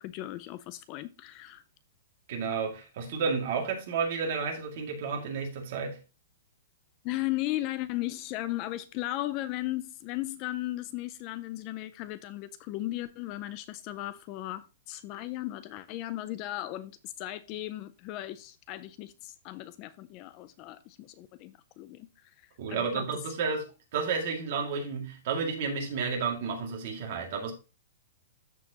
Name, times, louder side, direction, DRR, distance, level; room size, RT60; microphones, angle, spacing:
voice 1, 0.0-1.6 7.0-22.1 22.4-23.1, left 16 dB, 25° left, 0.4 m, -36 dB
voice 2, 2.3-6.0 22.6-27.5, right 5 dB, 40° right, 2.2 m, -31 dB
13.5 x 4.6 x 2.9 m
hypercardioid pair, 175°, 0 cm